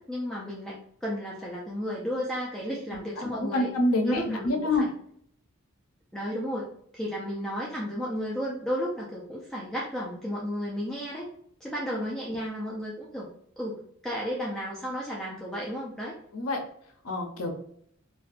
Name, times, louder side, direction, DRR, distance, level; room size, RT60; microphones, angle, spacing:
voice 1, 0.1-3.7 4.1-4.9 6.1-6.7 6.9-11.3 11.6-13.3 13.6-16.2, equal, ahead, -5 dB, 0.3 m, -33 dB
voice 2, 3.2-4.8 11.9-12.0 16.3-16.6 17.0-17.6, left 2 dB, 85° left, 3 dB, 0.5 m, -27 dB
2.5 x 2.2 x 2.3 m, 0.66 s
head